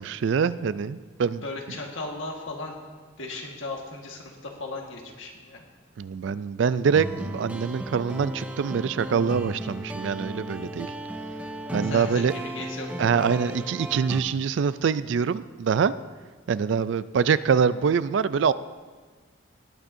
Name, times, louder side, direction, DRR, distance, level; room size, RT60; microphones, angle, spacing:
voice 1, 0.0-1.4 6.0-10.9 11.7-12.3 13.0-15.9 16.5-18.5, right 6 dB, 65° right, 16 dB, 0.3 m, -24 dB
voice 2, 1.4-2.8 3.2-5.6 11.8-13.3, left 2 dB, 75° left, 1 dB, 1.6 m, -36 dB
sound 1, 6.9-14.2, right 1 dB, 5° right, 0.5 m, -35 dB
18.5 x 8.7 x 2.7 m, 1.5 s
head